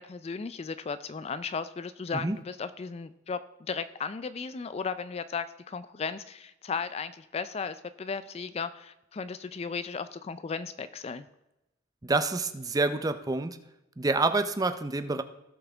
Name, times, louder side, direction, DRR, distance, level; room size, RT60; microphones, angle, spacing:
voice 1, 0.0-11.3, left 5 dB, 35° left, 13 dB, 0.4 m, -35 dB
voice 2, 12.0-13.6 14.0-15.2, right 3 dB, 20° right, 11 dB, 0.5 m, -27 dB
16.5 x 5.8 x 3.4 m, 0.92 s
head